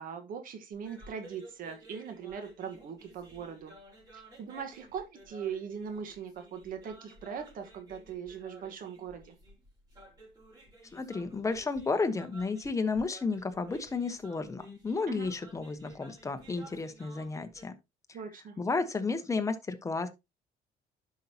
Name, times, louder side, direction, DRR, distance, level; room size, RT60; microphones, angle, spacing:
voice 1, 0.0-3.7 4.1-9.3 15.1-15.3 18.1-18.6, right 7 dB, 55° right, 1.5 m, -40 dB
sound 1, 0.7-17.6, right 1 dB, 25° right, 4.5 m, -55 dB
voice 2, 10.9-17.7 18.6-20.1, left 4 dB, 20° left, 1.1 m, -32 dB
11.0 x 5.6 x 2.9 m
cardioid pair, 120°, 16 cm